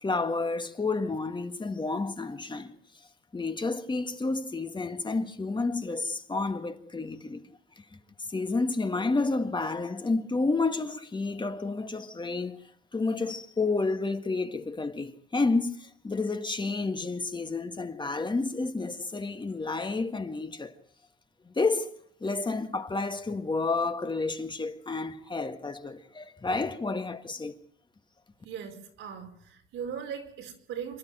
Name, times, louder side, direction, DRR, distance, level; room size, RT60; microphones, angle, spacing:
voice 1, 0.0-2.7 3.3-7.8 8.3-12.6 12.9-20.7 21.5-27.6, left 3 dB, 25° left, 1.8 m, -30 dB
voice 2, 28.4-31.0, right 7 dB, 85° right, 5.0 m, -39 dB
27.0 x 11.5 x 9.2 m
cardioid pair, 90°, 20 cm